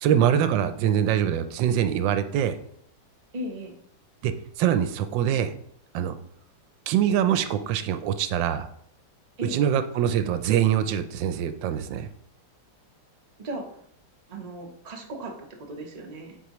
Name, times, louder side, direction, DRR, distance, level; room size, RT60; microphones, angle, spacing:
voice 1, 0.0-2.6 4.2-4.3 4.6-5.5 5.9-6.1 6.9-8.7 9.5-12.1, right 9 dB, 85° right, 10 dB, 1.3 m, -24 dB
voice 2, 3.3-3.8 9.4-9.6 13.4-13.7 14.3-16.4, right 1 dB, 30° right, 1 dB, 0.8 m, -36 dB
8.2 x 4.5 x 3.0 m, 0.68 s
omnidirectional pair, 2.0 m